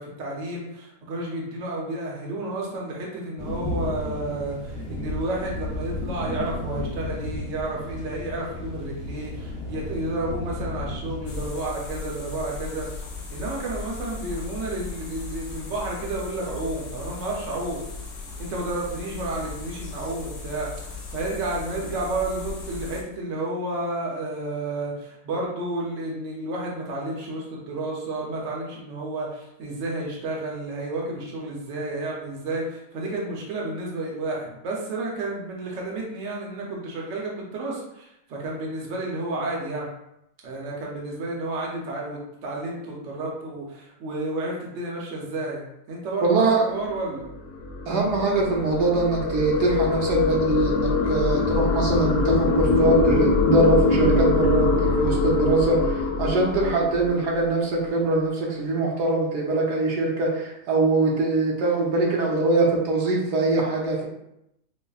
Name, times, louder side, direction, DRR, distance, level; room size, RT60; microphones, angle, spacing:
voice 1, 0.0-12.9 13.3-17.8 18.4-20.7 21.1-39.9 40.4-45.6 45.9-47.3, right 2 dB, 55° right, -2 dB, 1.0 m, -31 dB
sound 1, 3.4-11.5, left 2 dB, 40° left, 1.1 m, -33 dB
sound 2, 11.3-23.0, left 4 dB, 60° left, 0.8 m, -37 dB
voice 2, 46.2-46.7 47.9-64.1, right 2 dB, 80° right, -2 dB, 1.3 m, -22 dB
sound 3, 47.0-57.6, left 3 dB, 80° left, 1.2 m, -23 dB
5.3 x 2.1 x 2.4 m, 0.82 s
omnidirectional pair, 1.7 m